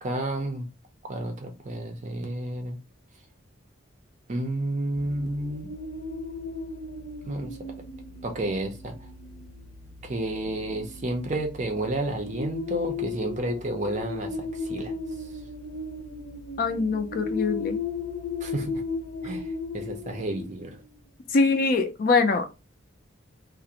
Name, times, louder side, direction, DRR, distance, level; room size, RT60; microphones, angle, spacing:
voice 1, 0.0-0.7 1.0-2.8 4.3-5.7 7.2-7.6 8.2-8.9 10.0-14.9 18.4-18.8 19.2-19.4 19.7-20.8, right 1 dB, 35° right, 0.5 m, -31 dB
sound 1, 4.9-20.9, left 3 dB, 85° left, 0.8 m, -36 dB
voice 2, 16.6-17.8 21.3-22.5, left 4 dB, 45° left, 0.4 m, -23 dB
2.4 x 2.0 x 2.7 m
head